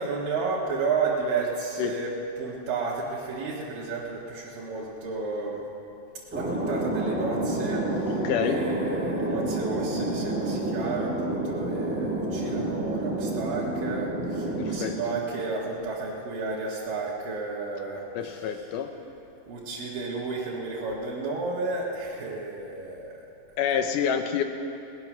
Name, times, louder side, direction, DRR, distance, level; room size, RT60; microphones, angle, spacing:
voice 1, 0.0-5.6 6.3-18.7 19.5-23.2, right 4 dB, 85° right, -7 dB, 3.4 m, -32 dB
Thunder, 6.3-15.6, right 1 dB, 5° right, 0.9 m, -29 dB
voice 2, 8.1-8.6 12.4-12.7 14.6-15.0 18.2-18.9 23.6-24.4, left 8 dB, 75° left, 7 dB, 2.3 m, -28 dB
20.0 x 9.6 x 6.0 m, 2.7 s
omnidirectional pair, 3.9 m